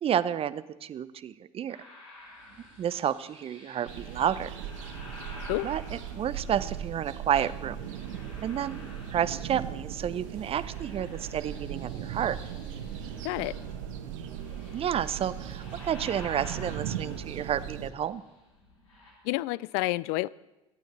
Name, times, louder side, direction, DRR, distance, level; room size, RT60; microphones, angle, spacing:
voice 1, 0.0-1.8 2.8-4.5 5.6-7.8 8.4-8.8 9.1-12.4 14.7-18.2, right 9 dB, 35° right, 15 dB, 0.6 m, -30 dB
sound 1, 1.7-7.0 7.5-9.8 10.0-19.1, left 2 dB, 80° left, 3.8 m, -50 dB
sound 2, 3.9-17.9, right 9 dB, 70° right, 1.0 m, -38 dB
voice 2, 13.2-13.5 19.3-20.3, left 21 dB, 60° left, 22 dB, 0.4 m, -29 dB
22.5 x 9.1 x 4.2 m, 1.0 s
figure-of-eight pair, 70°, 17 cm